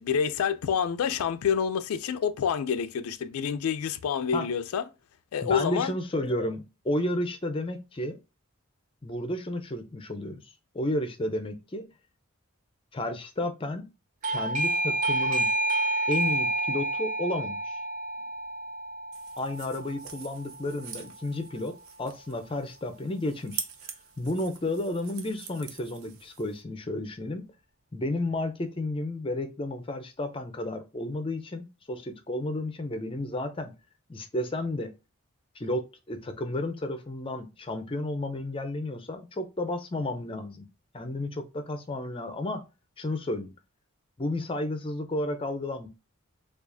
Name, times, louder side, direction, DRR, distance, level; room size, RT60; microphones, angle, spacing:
voice 1, 0.0-4.8 5.3-6.0, left 7 dB, 85° left, 0.4 m, -27 dB
voice 2, 5.4-8.2 9.0-11.9 12.9-13.9 14.2-15.5 16.1-17.8 19.4-23.7 24.2-27.4 27.9-33.7 34.1-34.9 35.6-40.7 40.9-42.6 43.0-43.5 44.2-45.9, left 1 dB, 25° left, 0.4 m, -32 dB
Doorbell, 14.2-20.7, right 1 dB, 35° right, 0.4 m, -29 dB
sound 1, 19.1-26.6, right 7 dB, 85° right, 0.7 m, -44 dB
4.6 x 2.4 x 2.6 m
head